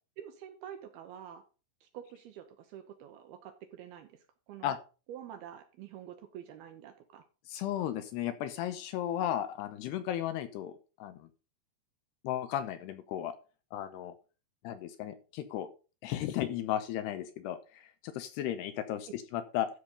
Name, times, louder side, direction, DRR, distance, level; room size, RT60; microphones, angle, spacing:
voice 1, 0.2-1.4 1.8-4.8 5.1-7.3, right 10 dB, 75° right, 7 dB, 2.5 m, -47 dB
voice 2, 7.5-11.3 12.2-13.4 13.7-14.1 14.6-15.7 16.0-19.7, left 11 dB, 80° left, 10 dB, 2.6 m, -35 dB
13.0 x 5.1 x 5.4 m, 0.34 s
omnidirectional pair, 5.2 m